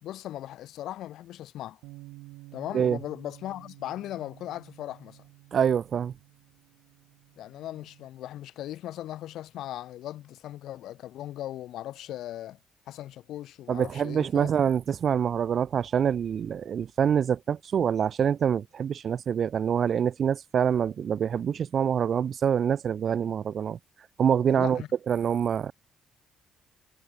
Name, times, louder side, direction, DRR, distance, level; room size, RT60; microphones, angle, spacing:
voice 1, 0.0-1.8 2.5-5.2 7.4-12.6 12.9-14.5 24.5-24.9, left 13 dB, 70° left, 1.7 m, -38 dB
Bass guitar, 1.8-8.1, right 21 dB, 75° right, 1.9 m, -51 dB
voice 2, 5.5-6.1 13.7-23.8 24.2-25.7, right 8 dB, 55° right, 0.4 m, -26 dB
hypercardioid pair, 50°, 0 cm